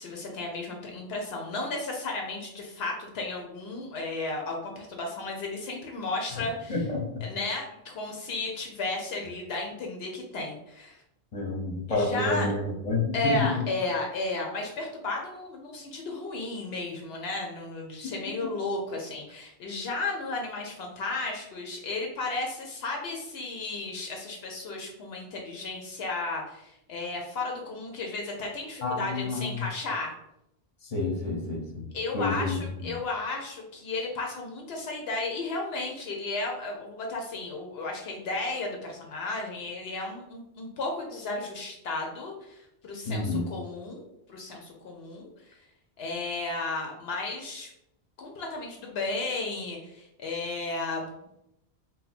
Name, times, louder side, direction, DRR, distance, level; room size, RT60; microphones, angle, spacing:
voice 1, 0.0-6.8 7.2-11.0 11.9-12.5 13.1-30.1 31.9-44.0 44.3-45.6 46.0-47.7 48.2-51.1, left 2 dB, 75° left, 1 dB, 0.8 m, -34 dB
voice 2, 6.4-7.0 11.3-13.5 18.0-18.1 28.8-29.6 30.8-31.9 32.1-32.9 43.0-43.5, left 3 dB, 40° left, -1 dB, 0.8 m, -29 dB
2.7 x 2.1 x 4.0 m, 0.84 s
omnidirectional pair, 1.1 m